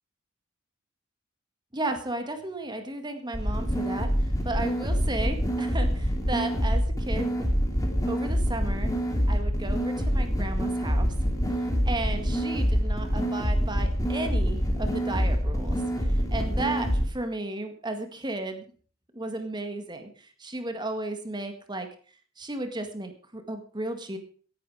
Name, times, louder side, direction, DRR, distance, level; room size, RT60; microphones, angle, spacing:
voice 1, 1.7-7.5 8.1-11.1 11.5-18.7 19.1-21.9 22.4-24.2, right 2 dB, 20° right, 7 dB, 1.9 m, -34 dB
sound 1, 3.3-17.0, equal, 15° left, 3.1 m, -26 dB
18.0 x 11.0 x 4.9 m, 0.42 s
head